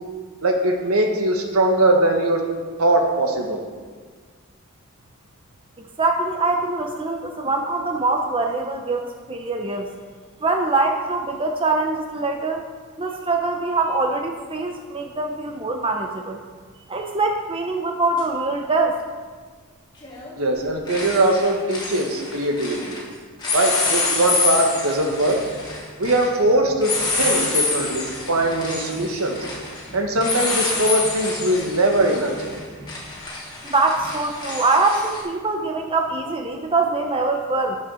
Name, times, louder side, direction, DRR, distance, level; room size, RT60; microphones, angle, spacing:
voice 1, 0.4-2.4 2.8-3.6 20.4-23.0 23.5-25.4 26.0-26.9 27.2-29.4 29.9-32.5, right 1 dB, 75° right, 2 dB, 1.6 m, -21 dB
voice 2, 5.8-9.9 10.4-12.6 13.0-16.4 16.9-19.0 33.6-37.8, right 3 dB, 25° right, 3 dB, 0.7 m, -23 dB
sound 1, 18.2-18.3 20.0-20.3 20.6-23.0 23.4-35.2, left 3 dB, 20° left, 2.5 m, -27 dB
11.0 x 7.4 x 6.4 m, 1.6 s
head